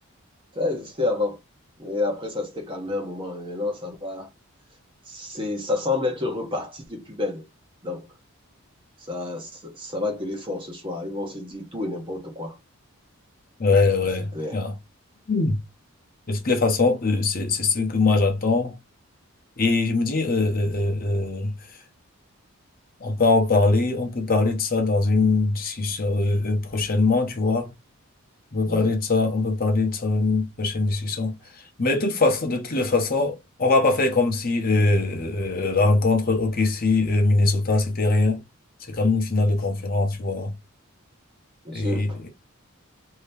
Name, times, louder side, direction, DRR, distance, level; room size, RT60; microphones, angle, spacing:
voice 1, 0.5-1.4 1.8-4.3 5.1-7.4 7.8-8.1 9.1-12.6 14.3-14.6 28.7-28.9 41.6-42.2, left 2 dB, 20° right, 0.8 m, -29 dB
voice 2, 13.6-14.7 15.3-15.6 16.3-18.8 19.6-21.8 23.0-27.7 28.5-38.4 38.8-40.5 41.7-42.3, left 3 dB, 40° left, 0.8 m, -22 dB
2.8 x 2.8 x 3.3 m
head